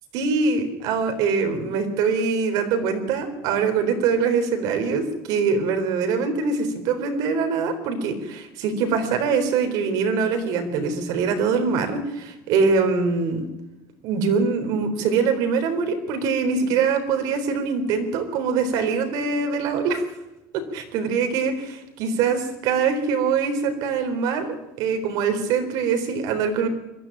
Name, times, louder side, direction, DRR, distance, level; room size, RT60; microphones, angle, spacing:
voice 1, 0.1-13.5 14.0-20.0 20.7-24.5 24.8-26.7, right 5 dB, 65° right, 7 dB, 3.8 m, -23 dB
22.0 x 13.5 x 8.9 m, 0.97 s
cardioid pair, 165°, 7 cm